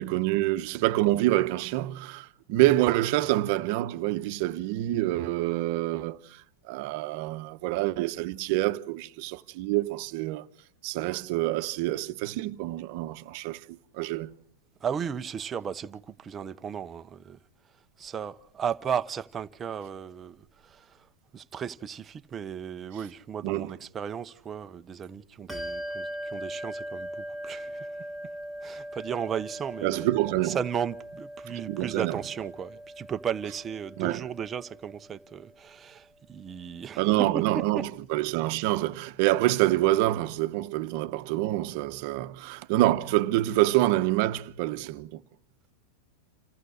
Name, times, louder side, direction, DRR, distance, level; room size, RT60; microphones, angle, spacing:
voice 1, 0.0-6.4 6.7-10.5 10.8-14.4 23.4-23.8 29.8-30.6 31.5-32.2 33.9-34.2 37.0-45.2, right 16 dB, 55° right, 1.0 m, -27 dB
voice 2, 14.8-17.4 18.0-20.4 20.6-20.8 21.3-27.9 28.6-30.1 30.4-37.1 37.5-37.9, right 7 dB, 25° right, 0.9 m, -35 dB
Bell, 25.5-35.5, equal, 5° left, 2.3 m, -40 dB
27.5 x 15.0 x 6.5 m
hypercardioid pair, 125°, 0 cm